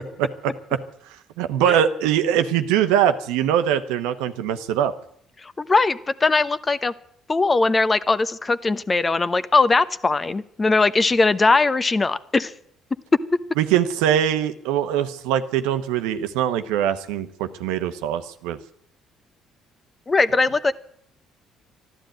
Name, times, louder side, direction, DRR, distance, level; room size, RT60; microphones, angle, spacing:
voice 1, 0.2-0.8 1.4-4.9 13.6-18.6, right 10 dB, 85° right, 9 dB, 1.0 m, -22 dB
voice 2, 5.4-6.9 7.3-12.5 20.1-20.7, left 3 dB, 25° left, 15 dB, 0.9 m, -20 dB
12.5 x 12.0 x 9.1 m, 0.66 s
supercardioid pair, 70°, 0 cm